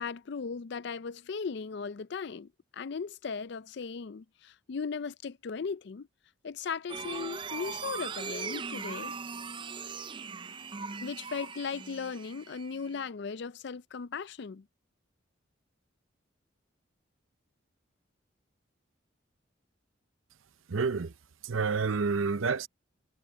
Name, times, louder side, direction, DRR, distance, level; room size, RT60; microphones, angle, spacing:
voice 1, 0.0-6.1 6.4-9.1 11.0-14.7, left 5 dB, 55° left, 0.4 m, -37 dB
sound 1, 6.9-13.1, right 5 dB, 25° right, 0.4 m, -40 dB
voice 2, 20.7-21.1 21.4-22.7, right 4 dB, 85° right, 0.7 m, -29 dB
head